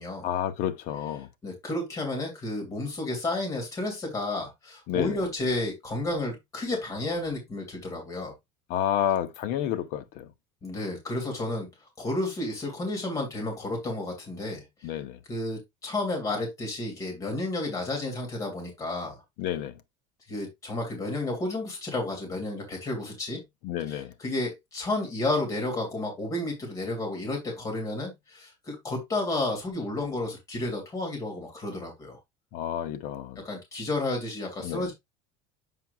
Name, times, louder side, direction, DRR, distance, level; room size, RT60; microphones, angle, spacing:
voice 1, 0.2-1.3 4.9-5.2 8.7-10.3 14.8-15.2 19.4-19.8 23.6-24.1 32.5-33.4 34.6-34.9, left 10 dB, 55° left, 0.8 m, -30 dB
voice 2, 1.4-8.3 10.6-11.7 12.0-14.6 15.3-19.2 20.3-23.4 23.9-32.2 33.4-34.9, left 2 dB, 20° left, 2.7 m, -31 dB
7.6 x 5.9 x 2.4 m
cardioid pair, 160°, 16 cm